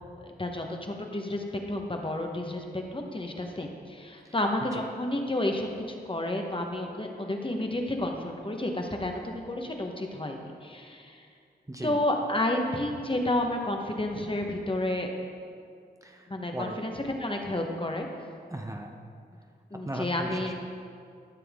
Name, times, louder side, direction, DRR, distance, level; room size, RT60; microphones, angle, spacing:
voice 1, 0.2-11.2 11.8-15.1 16.3-18.1 19.7-20.5, left 1 dB, 30° left, 2 dB, 1.1 m, -31 dB
voice 2, 16.0-16.8 18.5-18.9 19.9-20.5, right 1 dB, 20° right, 2 dB, 0.8 m, -37 dB
12.5 x 7.0 x 3.6 m, 2.3 s
cardioid pair, 55°, 18 cm